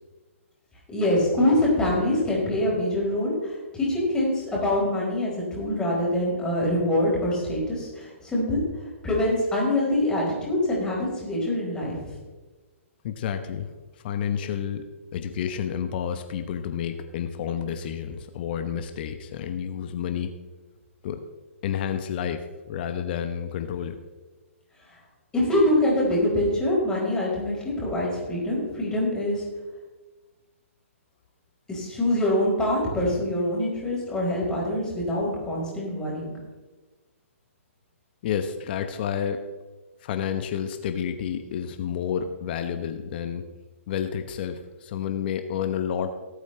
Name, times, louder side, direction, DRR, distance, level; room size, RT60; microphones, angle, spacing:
voice 1, 0.9-8.6 9.0-12.0 25.3-29.4 31.7-36.3, left 1 dB, 10° left, -5 dB, 4.4 m, -24 dB
voice 2, 13.0-13.7 14.0-20.3 21.0-21.2 21.6-24.0 38.2-39.4 40.0-43.5 43.9-46.2, left 8 dB, 45° left, 8 dB, 0.9 m, -30 dB
18.0 x 8.3 x 3.3 m, 1.3 s
hypercardioid pair, 130°, 7 cm